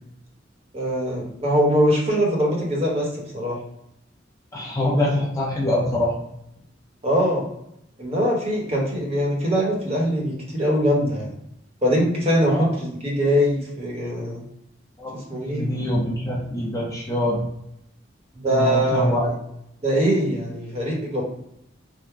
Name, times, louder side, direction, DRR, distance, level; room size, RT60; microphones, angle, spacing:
voice 1, 0.7-3.6 7.0-7.5 8.0-11.4 11.8-14.4 15.3-15.7 18.3-19.2 19.8-21.2, equal, 30° right, -2 dB, 1.0 m, -22 dB
voice 2, 4.5-6.2 12.5-12.7 15.0-15.1 15.5-17.4 18.4-19.3, left 1 dB, 15° left, -4 dB, 0.7 m, -24 dB
3.7 x 2.1 x 4.4 m, 0.78 s
head